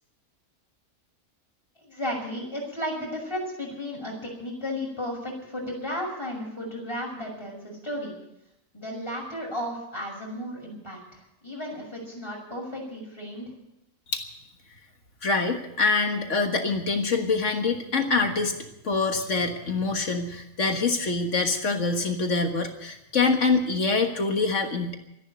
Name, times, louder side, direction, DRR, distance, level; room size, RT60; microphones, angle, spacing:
voice 1, 1.8-8.1 8.7-13.4, equal, 20° left, -2 dB, 6.3 m, -34 dB
voice 2, 15.2-18.6 18.8-25.0, left 4 dB, 65° left, 4 dB, 1.9 m, -25 dB
13.5 x 11.0 x 9.0 m, 0.86 s
omnidirectional pair, 1.4 m